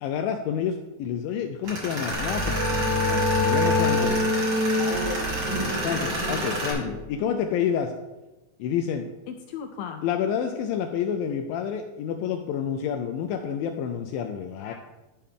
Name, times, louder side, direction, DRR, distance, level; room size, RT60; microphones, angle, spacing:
voice 1, 0.0-2.6 3.1-4.2 5.8-7.9 8.6-14.7, left 8 dB, 80° left, 5 dB, 2.1 m, -29 dB
Tools, 1.6-6.7, right 1 dB, 40° right, 2.3 m, -30 dB
sound 1, 1.9-7.4, left 2 dB, ahead, 1.8 m, -27 dB
sound 2, 2.1-4.3 4.9-6.5 6.8-7.1, right 2 dB, 70° right, 2.1 m, -36 dB
voice 2, 4.7-6.6 14.6-14.7, left 1 dB, 45° left, -3 dB, 1.1 m, -34 dB
11.5 x 5.6 x 3.6 m, 1.1 s
omnidirectional pair, 4.4 m